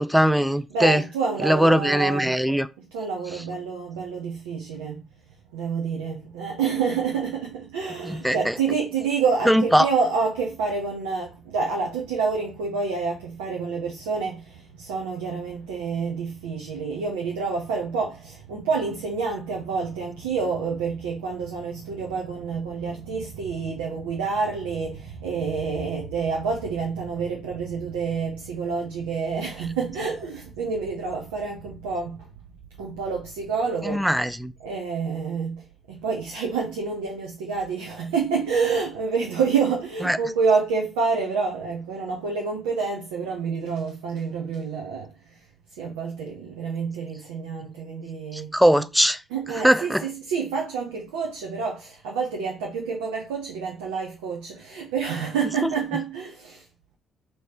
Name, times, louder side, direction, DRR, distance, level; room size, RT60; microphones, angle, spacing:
voice 1, 0.0-1.0 1.4-2.7 8.0-8.5 9.5-9.9 33.8-34.5 40.1-40.2 48.3-49.2 49.6-50.0 55.6-55.7, equal, ahead, 0.4 m, -20 dB
voice 2, 0.7-2.6 2.9-5.0 5.5-32.3 32.8-34.1 34.6-45.4 45.8-48.5 49.3-56.7, right 5 dB, 80° right, 0.7 m, -28 dB
3.3 x 3.1 x 4.3 m
hypercardioid pair, 45°, 0 cm